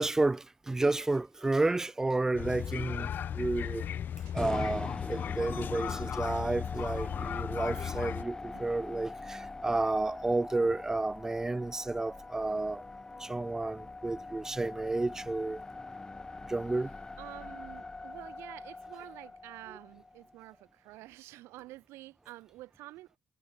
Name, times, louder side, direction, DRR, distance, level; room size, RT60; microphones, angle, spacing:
voice 1, 0.0-3.1 3.3-3.9 4.3-12.8 13.2-15.6 16.5-16.9, right 2 dB, 10° right, 0.3 m, -31 dB
sound 1, 2.3-8.2, left 9 dB, 50° left, 0.7 m, -36 dB
sound 2, 4.4-20.5, left 3 dB, 15° left, 2.7 m, -43 dB
voice 2, 17.2-23.1, right 17 dB, 85° right, 4.1 m, -49 dB
cardioid pair, 115°, 4 cm